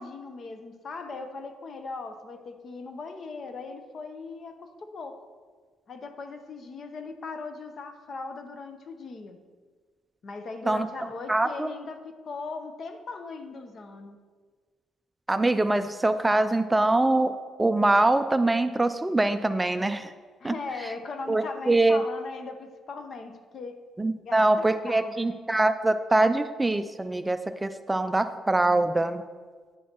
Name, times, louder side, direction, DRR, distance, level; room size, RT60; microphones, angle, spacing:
voice 1, 0.0-5.2 5.9-9.4 10.2-12.0 12.2-14.2 20.4-23.8 24.2-25.4, left 4 dB, 50° left, 7 dB, 0.7 m, -39 dB
voice 2, 11.3-11.7 15.3-17.3 17.6-20.1 20.4-20.9 21.3-22.0 24.0-29.2, right 2 dB, 15° right, 10 dB, 0.3 m, -24 dB
9.1 x 6.3 x 2.9 m, 1.5 s
cardioid pair, 90°, 0 cm